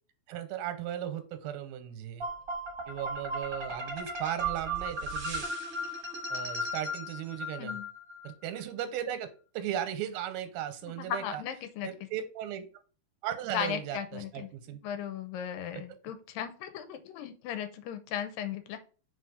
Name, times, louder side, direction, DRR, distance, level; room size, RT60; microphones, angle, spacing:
voice 1, 0.3-2.3 2.9-5.5 6.3-7.8 8.2-9.3 9.5-11.4 11.8-12.7 13.2-14.8 15.7-15.8, right 10 dB, 90° right, 10 dB, 2.6 m, -36 dB
sound 1, 2.2-8.3, right 1 dB, 45° right, 1.2 m, -36 dB
voice 2, 10.9-11.9 13.5-14.5 14.8-18.8, left 9 dB, 75° left, 9 dB, 2.4 m, -36 dB
5.1 x 4.1 x 5.0 m, 0.37 s
omnidirectional pair, 4.3 m